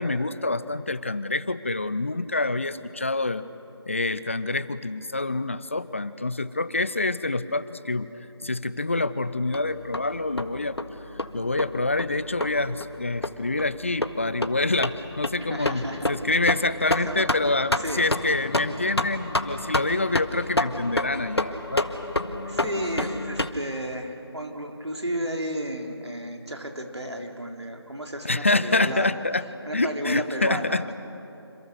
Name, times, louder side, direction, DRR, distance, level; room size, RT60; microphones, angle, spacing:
voice 1, 0.0-3.5 3.9-8.1 8.4-10.8 11.3-21.9 28.2-29.4 29.7-30.8, left 2 dB, 30° left, 15 dB, 0.6 m, -26 dB
sound 1, 9.5-23.5, left 1 dB, 70° left, 1.8 m, -29 dB
voice 2, 15.5-16.1 17.1-17.3 17.8-18.1 22.4-29.2 29.7-30.9, right 1 dB, 80° right, 2 dB, 3.9 m, -33 dB
28.0 x 27.0 x 6.8 m, 2.9 s
figure-of-eight pair, 165°, 14 cm